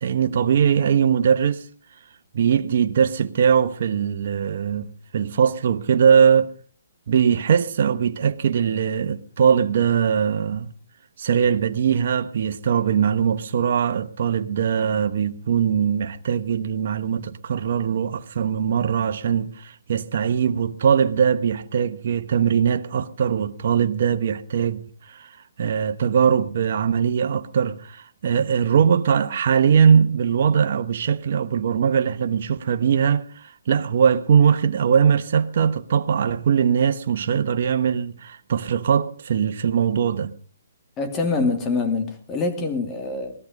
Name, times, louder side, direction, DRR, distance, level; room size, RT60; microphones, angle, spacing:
voice 1, 0.0-1.6 2.3-6.5 7.1-10.7 11.2-40.3, right 7 dB, 55° right, 1.0 m, -21 dB
voice 2, 41.0-43.3, left 3 dB, 20° left, 2.6 m, -25 dB
20.0 x 13.5 x 5.3 m
hypercardioid pair, 155°, 0 cm